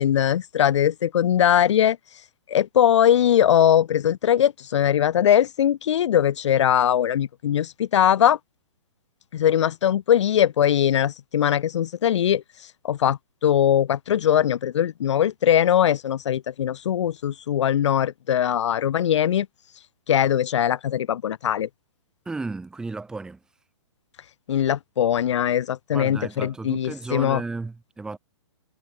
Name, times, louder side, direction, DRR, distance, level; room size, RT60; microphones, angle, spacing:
voice 1, 0.0-2.0 2.5-8.4 9.3-12.4 12.8-19.5 20.1-21.7 24.5-27.4, left 10 dB, 75° left, 0.4 m, -21 dB
voice 2, 22.2-23.4 25.9-28.2, right 3 dB, 5° right, 3.2 m, -33 dB
hypercardioid pair, 165°, 15 cm